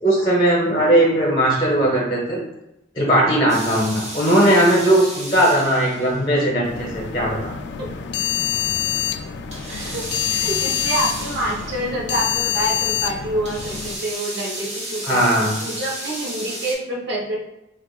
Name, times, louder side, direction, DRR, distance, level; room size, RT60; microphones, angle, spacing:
voice 1, 0.0-2.4 2.9-7.5 15.0-15.5, right 1 dB, 25° left, -3 dB, 0.9 m, -18 dB
sound 1, 3.5-6.3 9.5-11.9 13.4-16.7, right 1 dB, 40° right, 1.3 m, -33 dB
sound 2, 6.6-14.0, left 11 dB, 65° left, 0.3 m, -26 dB
voice 2, 9.7-15.3 15.6-17.4, right 1 dB, 65° right, -1 dB, 0.9 m, -27 dB
4.5 x 2.4 x 2.4 m, 0.89 s
head